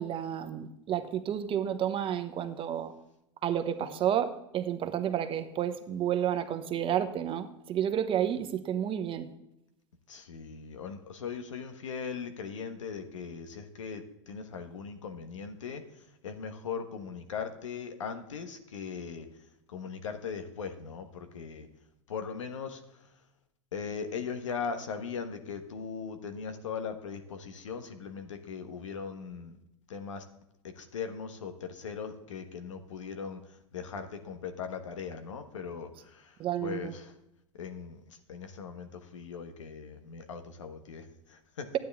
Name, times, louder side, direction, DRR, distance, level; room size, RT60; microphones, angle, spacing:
voice 1, 0.0-2.9 3.4-9.3 36.4-36.9, right 10 dB, 35° right, 8 dB, 1.0 m, -31 dB
voice 2, 10.1-19.3 19.7-21.7 22.1-23.1 23.7-29.6 29.9-30.2 30.6-33.4 33.7-37.1 37.5-41.7, left 6 dB, 85° left, 7 dB, 1.2 m, -39 dB
12.0 x 9.3 x 3.5 m, 0.84 s
hypercardioid pair, 100°, 16 cm